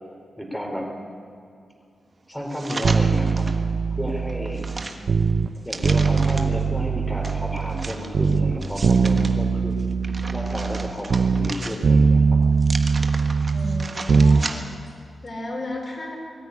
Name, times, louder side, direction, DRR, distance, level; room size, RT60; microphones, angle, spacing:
voice 1, 0.4-0.9 2.3-3.5 4.0-4.6 5.6-9.8 10.3-12.4, equal, 5° left, 1 dB, 3.7 m, -32 dB
sound 1, 2.5-3.6 4.1-6.6 7.2-9.3 9.8-12.1 12.6-14.9 15.3-15.4, right 3 dB, 35° right, 1.5 m, -35 dB
sound 2, 2.8-5.5 5.8-7.9 8.1-11.6 11.8-14.4 14.7-14.8, right 5 dB, 60° right, 0.7 m, -21 dB
voice 2, 13.5-14.7 15.2-16.2, left 1 dB, 35° left, 0 dB, 4.9 m, -33 dB
21.5 x 14.5 x 9.6 m, 2.4 s
wide cardioid pair, 125°, 0 cm